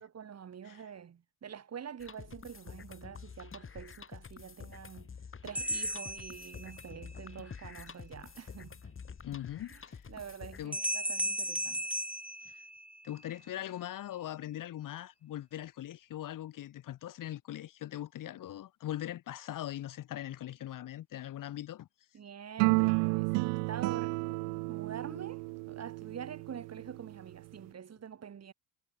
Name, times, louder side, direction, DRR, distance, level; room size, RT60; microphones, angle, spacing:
voice 1, 0.1-5.1 5.4-8.9 9.7-9.8 10.1-11.9 22.1-28.5, right 8 dB, 35° right, 4.5 m, -46 dB
sound 1, 2.0-10.7, left 6 dB, 30° left, 5.5 m, -48 dB
sound 2, 5.5-7.1 10.7-13.2, right 1 dB, 5° right, 1.5 m, -35 dB
voice 2, 9.2-10.1 10.6-10.8 12.5-12.6 13.0-21.9, left 12 dB, 50° left, 2.0 m, -41 dB
sound 3, 22.6-27.0, right 40 dB or more, 70° right, 0.8 m, -31 dB
hypercardioid pair, 80°, 42 cm